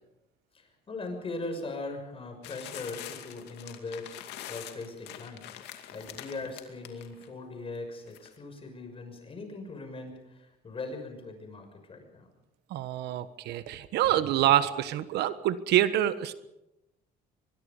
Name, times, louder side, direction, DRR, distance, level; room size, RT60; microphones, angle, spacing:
voice 1, 0.5-4.2 4.5-12.3, left 3 dB, 35° left, 5 dB, 6.3 m, -40 dB
sound 1, 2.4-7.3 8.1-8.3, left 12 dB, 85° left, 2.4 m, -44 dB
voice 2, 12.7-16.3, right 12 dB, 80° right, 13 dB, 1.3 m, -26 dB
23.5 x 22.0 x 5.4 m, 0.90 s
cardioid pair, 110°, 17 cm